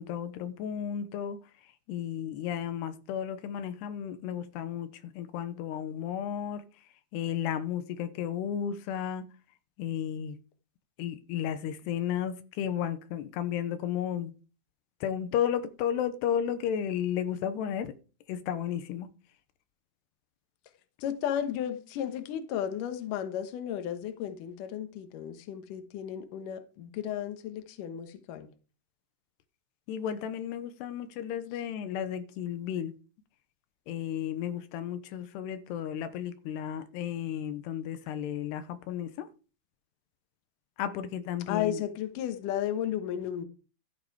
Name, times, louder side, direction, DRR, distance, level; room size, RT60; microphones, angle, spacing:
voice 1, 0.0-6.9 7.1-9.3 9.8-10.4 11.0-14.3 15.0-17.9 18.3-19.1 29.9-32.9 33.9-39.3 40.8-41.8, left 9 dB, 85° left, 3.0 m, -33 dB
voice 2, 21.0-28.5 41.5-43.5, left 10 dB, 65° left, 2.5 m, -34 dB
13.5 x 7.5 x 4.8 m
omnidirectional pair, 4.7 m